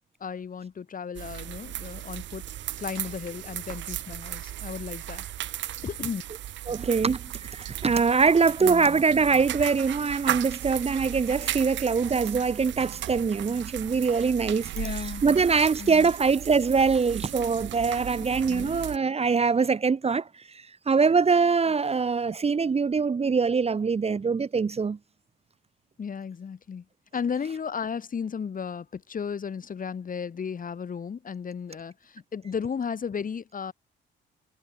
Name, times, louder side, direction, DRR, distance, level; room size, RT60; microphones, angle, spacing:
voice 1, 0.2-2.4 2.8-5.2 5.8-6.2 8.6-9.0 14.7-15.4 15.8-16.1 18.4-18.7 26.0-26.8 27.1-33.7, left 6 dB, 45° left, 3.2 m, -34 dB
sound 1, 1.1-19.0, right 12 dB, 65° right, 0.8 m, -36 dB
voice 2, 6.7-14.7 15.2-25.0, right 5 dB, 30° right, 1.2 m, -23 dB
cardioid pair, 90°, 20 cm